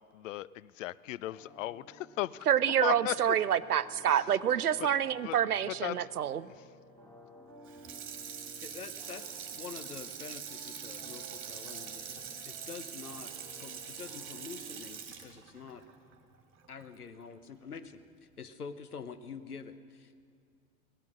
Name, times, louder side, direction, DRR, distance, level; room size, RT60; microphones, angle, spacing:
voice 1, 0.1-2.5 2.8-3.2 4.1-4.3 4.8-4.9 5.2-5.4 5.7-6.1 6.5-6.6, left 15 dB, 60° left, 21 dB, 0.5 m, -36 dB
sound 1, 1.3-14.8, right 1 dB, 5° left, 2.6 m, -55 dB
voice 2, 2.5-6.4, right 9 dB, 85° right, 17 dB, 0.5 m, -27 dB
Water tap faucet / Sink (filling or washing), 7.6-16.9 17.3-17.4, right 8 dB, 25° right, 2.1 m, -44 dB
voice 3, 8.6-15.8 16.7-18.0 18.4-20.1, left 5 dB, 85° left, 12 dB, 0.9 m, -46 dB
17.5 x 12.0 x 6.3 m, 2.2 s
figure-of-eight pair, 85°, 44 cm